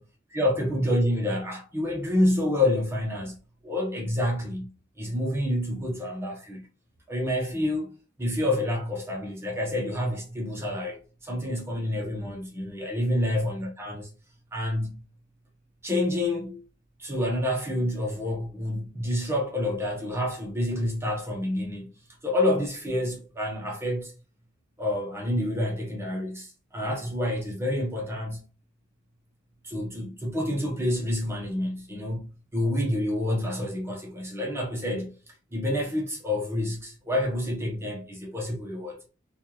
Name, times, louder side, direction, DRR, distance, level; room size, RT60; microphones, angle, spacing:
voice 1, 0.3-3.4 3.6-4.7 5.0-6.6 7.1-14.1 14.5-15.0 15.8-16.6 17.0-21.9 22.2-24.1 24.8-28.4 29.6-39.0, left 1 dB, 15° right, 0.9 m, -28 dB
4.3 x 2.4 x 3.0 m
head